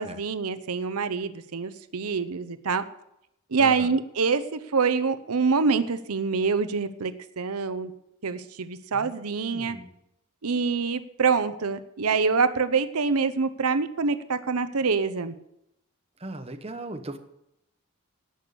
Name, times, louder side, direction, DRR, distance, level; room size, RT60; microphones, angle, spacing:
voice 1, 0.0-2.9 3.5-7.9 8.2-9.8 10.4-15.3, right 5 dB, 90° right, 11 dB, 0.8 m, -25 dB
voice 2, 3.6-3.9 8.9-9.9 16.2-17.2, right 2 dB, 25° right, 6 dB, 1.1 m, -38 dB
18.0 x 6.3 x 6.9 m, 0.81 s
head